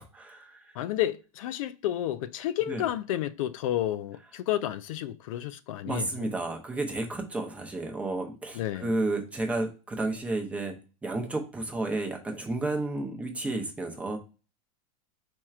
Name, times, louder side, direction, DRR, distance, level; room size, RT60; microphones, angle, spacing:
voice 1, 0.0-0.7 2.7-2.9 5.8-10.7 11.0-14.2, right 2 dB, 5° right, 0.6 m, -32 dB
voice 2, 0.8-6.3 8.5-8.9, left 12 dB, 65° left, 0.4 m, -31 dB
4.4 x 4.4 x 2.4 m
supercardioid pair, 160°, 18 cm